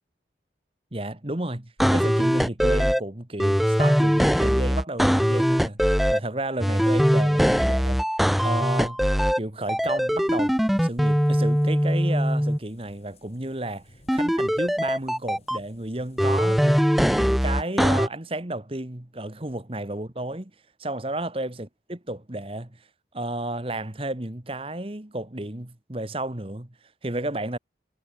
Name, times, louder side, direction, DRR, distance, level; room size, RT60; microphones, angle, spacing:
voice 1, 0.9-8.1 8.4-9.1 9.4-16.8 17.1-20.5 20.8-22.9 23.1-26.7 27.0-27.6, right 1 dB, 30° right, 1.5 m, -32 dB
sound 1, 1.8-3.0 3.4-6.2 6.6-9.4 9.7-12.6 14.1-15.6 16.2-18.1, equal, ahead, 0.6 m, -21 dB
sound 2, 10.1-16.9, left 1 dB, 35° left, 5.5 m, -58 dB
head